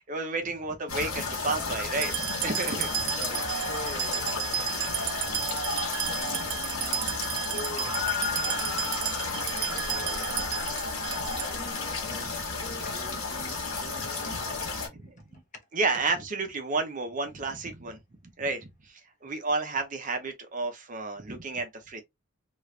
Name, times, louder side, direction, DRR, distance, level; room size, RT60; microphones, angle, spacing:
voice 1, 0.0-2.9 4.5-4.9 5.8-6.0 9.9-10.1 15.0-15.1 15.7-18.0 18.4-22.0, right 3 dB, 35° right, 0.6 m, -31 dB
sound 1, 0.9-14.9, left 4 dB, 90° left, 1.4 m, -32 dB
sound 2, 2.0-11.7, right 10 dB, 90° right, 0.5 m, -33 dB
voice 2, 3.2-4.3 6.1-7.2 7.5-8.0 9.4-10.6 11.2-15.4 15.9-16.0, equal, 35° left, 0.8 m, -45 dB
3.1 x 2.4 x 3.2 m
head